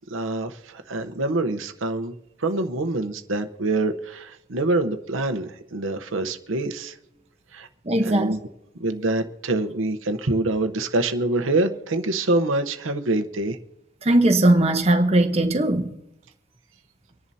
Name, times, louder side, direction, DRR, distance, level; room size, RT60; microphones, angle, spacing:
voice 1, 0.1-2.1 2.4-6.9 7.5-7.7 8.0-8.4 8.8-13.6, right 2 dB, 85° right, 0.9 m, -25 dB
voice 2, 7.9-8.4 14.0-15.9, right 1 dB, 30° right, 1.0 m, -19 dB
25.5 x 10.5 x 2.8 m
head